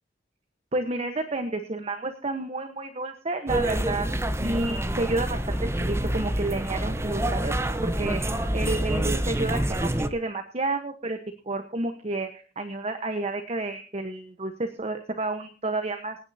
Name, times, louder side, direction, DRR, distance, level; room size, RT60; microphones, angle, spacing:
voice 1, 0.7-4.1 4.4-7.5 7.8-8.2 8.5-11.2 11.4-16.2, right 2 dB, 35° right, 7 dB, 1.2 m, -30 dB
sound 1, 3.5-10.1, right 1 dB, 15° right, 0.9 m, -28 dB
sound 2, 3.7-9.7, equal, 15° left, 3.8 m, -34 dB
25.5 x 9.6 x 2.8 m, 0.38 s
head